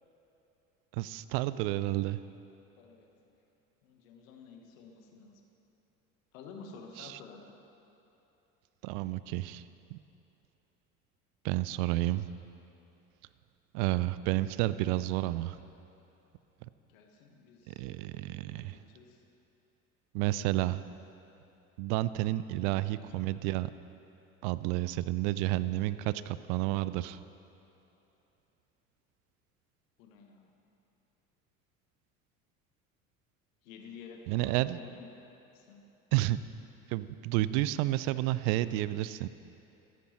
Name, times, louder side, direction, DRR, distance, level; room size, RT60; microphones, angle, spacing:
voice 1, 0.9-2.2 7.0-7.2 8.8-9.6 9.9-10.0 11.4-12.3 13.7-15.6 17.7-18.8 20.1-20.8 21.8-23.7 24.4-27.2 34.3-34.8 36.1-36.4 36.9-39.3, right 16 dB, 55° right, 15 dB, 0.5 m, -30 dB
voice 2, 2.8-3.1 3.8-5.4 6.3-7.4 16.9-17.9 18.5-19.2 23.1-23.2 30.0-30.5 33.6-35.2 35.5-35.8, left 5 dB, 70° left, 2 dB, 1.3 m, -51 dB
13.5 x 10.0 x 3.1 m, 3.0 s
hypercardioid pair, 70°, 42 cm